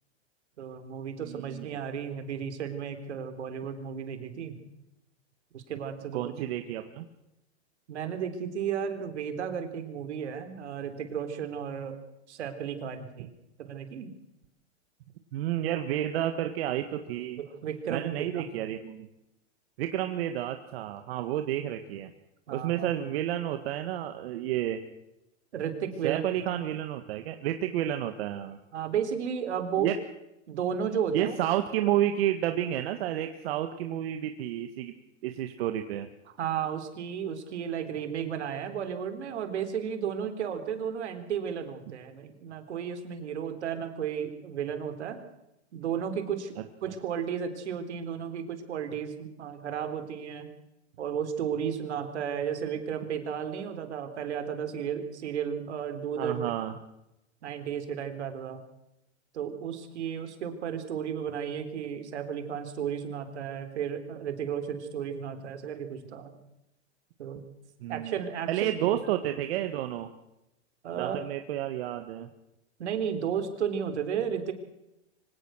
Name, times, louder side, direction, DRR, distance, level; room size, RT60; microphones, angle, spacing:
voice 1, 0.6-4.6 5.5-6.2 7.9-12.0 12.3-13.3 13.6-14.1 17.4-18.5 22.5-22.9 25.5-26.2 28.7-29.9 30.5-31.3 36.3-45.2 45.7-50.5 51.0-56.4 57.4-58.6 59.3-66.3 67.2-67.5 67.9-68.8 70.8-71.2 72.8-74.5, right 8 dB, 75° right, 8 dB, 3.7 m, -33 dB
voice 2, 1.2-1.7 6.1-7.1 15.3-17.4 17.9-19.1 19.8-22.1 22.5-24.8 26.0-28.6 29.8-29.9 31.1-34.9 35.2-36.1 56.2-56.7 67.8-68.1 68.5-70.1 71.0-72.3, right 12 dB, 60° right, 7 dB, 1.7 m, -30 dB
24.5 x 17.5 x 6.3 m, 0.88 s
hypercardioid pair, 130°, 34 cm